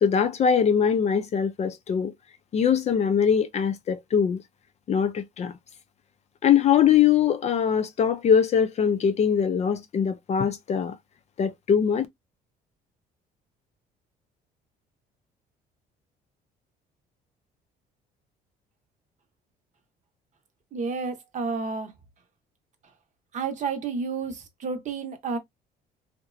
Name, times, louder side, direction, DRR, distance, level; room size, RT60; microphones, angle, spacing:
voice 1, 0.0-2.1 2.5-4.4 4.9-5.5 6.4-11.0 11.4-12.1, left 7 dB, 40° left, 0.4 m, -22 dB
voice 2, 20.7-21.9 23.3-25.4, right 5 dB, 45° right, 0.8 m, -30 dB
2.8 x 2.1 x 2.3 m
cardioid pair, 110°, 17 cm